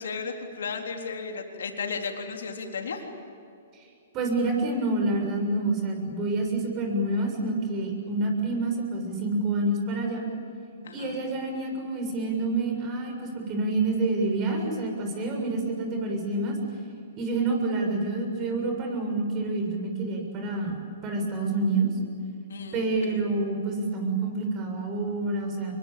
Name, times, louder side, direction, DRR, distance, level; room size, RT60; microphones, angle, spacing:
voice 1, 0.0-3.0 10.8-11.2 22.5-23.2, left 5 dB, 75° left, 2 dB, 3.8 m, -34 dB
voice 2, 4.1-10.3 10.9-16.6 17.2-21.9 22.7-25.7, right 2 dB, 30° right, 3 dB, 7.1 m, -28 dB
26.0 x 23.0 x 8.8 m, 2.5 s
hypercardioid pair, 130°, 0 cm